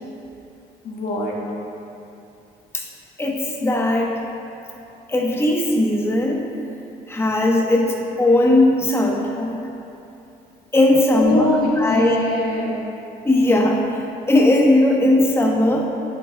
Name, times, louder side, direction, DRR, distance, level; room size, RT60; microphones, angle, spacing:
voice 1, 0.8-1.3 11.1-12.7, left 2 dB, 60° left, -4 dB, 1.8 m, -22 dB
voice 2, 3.2-4.1 5.1-6.5 7.1-9.6 10.7-11.5 11.8-12.2 13.2-13.8 14.3-15.9, left 1 dB, 15° left, 0 dB, 1.1 m, -18 dB
9.8 x 9.4 x 2.3 m, 2.8 s
cardioid pair, 110°, 17 cm